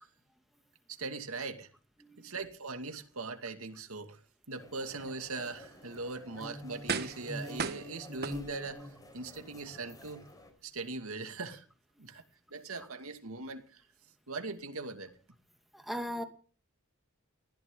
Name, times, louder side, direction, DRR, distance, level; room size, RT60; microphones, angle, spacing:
voice 1, 1.0-1.7 2.2-4.2 4.5-8.9 9.1-10.3 10.6-11.6 12.0-12.2 12.5-13.8 14.3-15.2, right 3 dB, 75° right, 6 dB, 2.3 m, -40 dB
voice 2, 2.0-2.3 15.7-16.2, equal, ahead, 5 dB, 2.4 m, -38 dB
sound 1, 4.5-10.5, equal, 15° left, 4.5 m, -47 dB
sound 2, 5.9-6.1 6.9-7.3 7.6-8.8 9.4-9.5, right 5 dB, 50° right, 1.3 m, -36 dB
20.0 x 15.5 x 3.9 m, 0.38 s
head